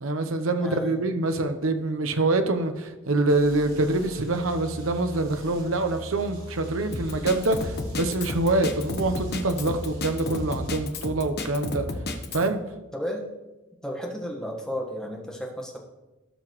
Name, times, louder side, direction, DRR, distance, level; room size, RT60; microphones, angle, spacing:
voice 1, 0.0-11.9 12.3-12.6, right 2 dB, 75° right, 7 dB, 0.7 m, -25 dB
voice 2, 0.6-0.9 12.3-12.4 12.9-13.2 13.8-15.8, equal, 5° left, 0 dB, 1.2 m, -33 dB
sound 1, 3.3-10.7, right 1 dB, 40° right, 3.6 m, -41 dB
Drum kit, 6.9-12.5, left 2 dB, 50° left, 0.9 m, -32 dB
17.0 x 5.8 x 3.1 m, 1.1 s
head